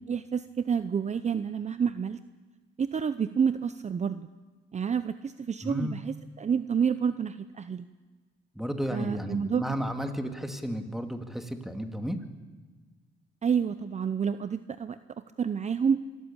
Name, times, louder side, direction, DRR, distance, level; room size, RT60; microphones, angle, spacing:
voice 1, 0.1-2.2 2.8-4.3 4.7-7.8 8.9-9.7 13.4-15.0 15.4-16.0, right 7 dB, 35° right, 12 dB, 0.7 m, -29 dB
voice 2, 5.6-6.0 8.6-12.2, equal, ahead, 6 dB, 2.2 m, -33 dB
24.0 x 14.0 x 8.9 m, 1.4 s
cardioid pair, 90°, 20 cm